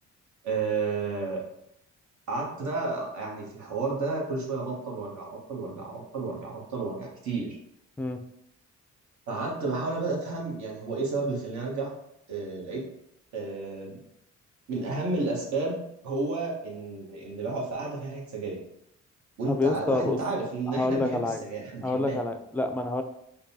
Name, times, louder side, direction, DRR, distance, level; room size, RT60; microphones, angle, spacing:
voice 1, 0.4-1.4 2.3-7.6 9.3-11.9 12.3-12.9 13.3-14.0 14.7-18.6 19.4-22.2, right 3 dB, 70° right, -2 dB, 1.2 m, -32 dB
voice 2, 19.5-20.2 20.7-21.4 21.8-23.0, left 2 dB, 5° left, 6 dB, 0.3 m, -27 dB
5.2 x 2.3 x 2.7 m, 0.78 s
cardioid pair, 90°, 30 cm